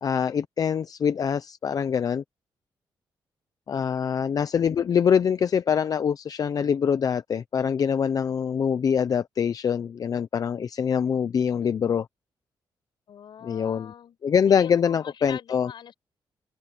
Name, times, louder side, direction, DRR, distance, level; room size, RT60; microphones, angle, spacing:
voice 1, 0.0-2.2 3.7-12.1 13.4-13.9 14.2-15.7, left 7 dB, 45° left, 0.6 m, -24 dB
voice 2, 13.1-14.2 14.4-15.9, left 9 dB, 70° left, 6.7 m, -43 dB
open air
wide cardioid pair, 135°, 8 cm